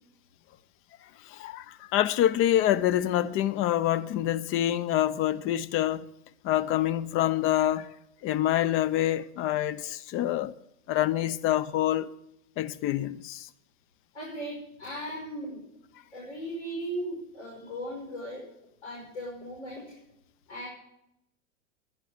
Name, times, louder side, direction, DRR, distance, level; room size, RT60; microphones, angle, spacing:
voice 1, 1.3-6.1 6.4-7.9 8.2-10.5 10.9-12.1 12.6-13.5, left 12 dB, 35° left, 0.6 m, -26 dB
voice 2, 14.1-15.6 16.1-18.4 18.8-20.0 20.5-20.7, right 1 dB, 70° left, 5.6 m, -37 dB
11.5 x 11.0 x 5.0 m
hypercardioid pair, 110°, 39 cm